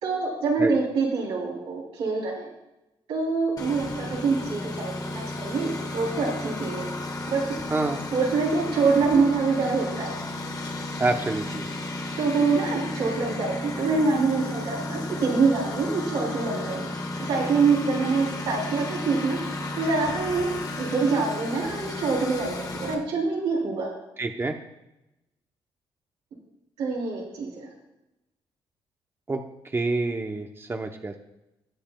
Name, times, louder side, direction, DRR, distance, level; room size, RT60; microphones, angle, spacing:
voice 1, 0.0-2.5 3.1-6.9 7.3-7.4 8.1-10.1 12.2-16.9 17.2-19.4 19.8-20.5 20.8-23.9 26.8-27.7, right 4 dB, 90° right, -4 dB, 3.5 m, -25 dB
Engine, 3.6-22.9, left 2 dB, 40° left, 1.5 m, -33 dB
voice 2, 7.7-8.0 11.0-11.7 24.2-24.6 29.3-29.4 29.7-31.2, right 2 dB, 25° right, 5 dB, 0.8 m, -27 dB
19.0 x 6.8 x 2.3 m, 0.92 s
cardioid pair, 70°, 10 cm